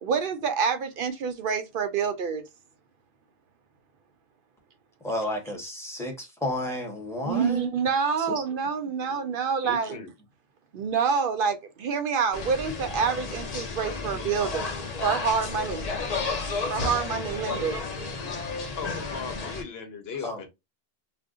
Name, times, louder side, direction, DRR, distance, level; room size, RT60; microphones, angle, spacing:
voice 1, 0.0-2.4 7.2-10.0 10.7-14.7 15.0-15.8 16.7-18.3, right 6 dB, 65° right, 0.7 m, -27 dB
voice 2, 5.0-7.7 8.2-8.4 20.2-20.4, left 1 dB, 5° left, 0.8 m, -32 dB
voice 3, 9.6-10.1 18.8-20.5, left 5 dB, 80° left, 1.0 m, -37 dB
sound 1, 12.3-19.6, left 4 dB, 45° left, 0.6 m, -32 dB
2.5 x 2.1 x 3.5 m
omnidirectional pair, 1.0 m